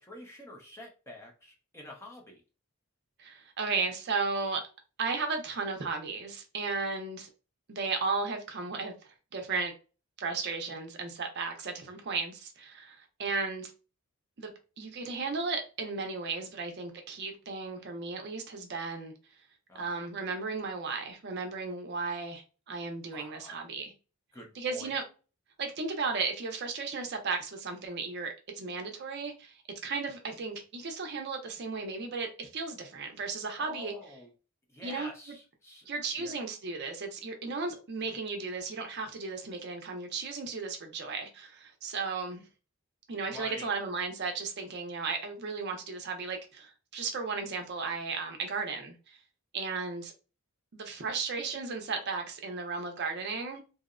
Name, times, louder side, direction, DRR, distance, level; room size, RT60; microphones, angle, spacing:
voice 1, 0.0-2.4 19.7-20.1 23.1-23.7 24.3-24.9 33.6-34.3 34.7-35.9 36.2-36.4 43.3-43.7, left 1 dB, 10° left, 0.5 m, -47 dB
voice 2, 3.2-4.6 5.0-7.3 7.7-9.7 10.2-13.7 14.4-14.5 14.8-19.1 19.7-23.9 24.6-25.0 25.6-29.5 29.8-33.9 34.8-35.1 35.9-42.4 43.1-49.2 49.5-50.1 50.7-53.6, right 4 dB, 50° right, 0.5 m, -35 dB
2.7 x 2.0 x 2.4 m
head